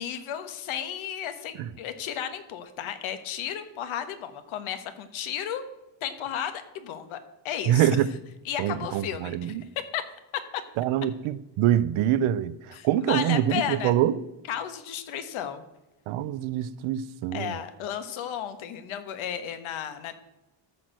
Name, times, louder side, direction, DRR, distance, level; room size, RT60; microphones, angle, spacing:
voice 1, 0.0-5.6 6.0-7.2 7.4-8.0 8.4-9.6 9.9-10.0 10.5-10.6 12.7-13.9 14.5-15.6 17.3-20.1, left 9 dB, 80° left, 1.4 m, -33 dB
voice 2, 7.7-8.1 8.6-9.6 10.8-14.2 16.1-17.5, right 11 dB, 80° right, 0.7 m, -25 dB
13.5 x 4.6 x 7.6 m
cardioid pair, 145°, 48 cm